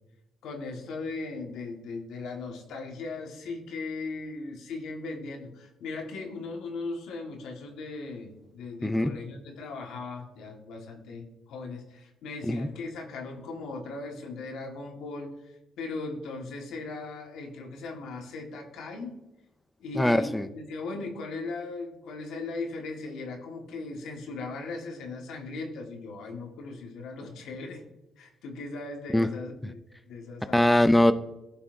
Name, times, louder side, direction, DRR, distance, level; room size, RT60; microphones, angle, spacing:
voice 1, 0.4-19.2 19.8-27.8 28.2-30.7, left 3 dB, 85° left, 2 dB, 1.6 m, -38 dB
voice 2, 8.8-9.2 12.4-12.7 20.0-20.5 29.1-29.3 30.5-31.1, left 1 dB, 5° left, 10 dB, 0.5 m, -21 dB
15.0 x 5.7 x 2.7 m, 0.97 s
cardioid pair, 90°, 0 cm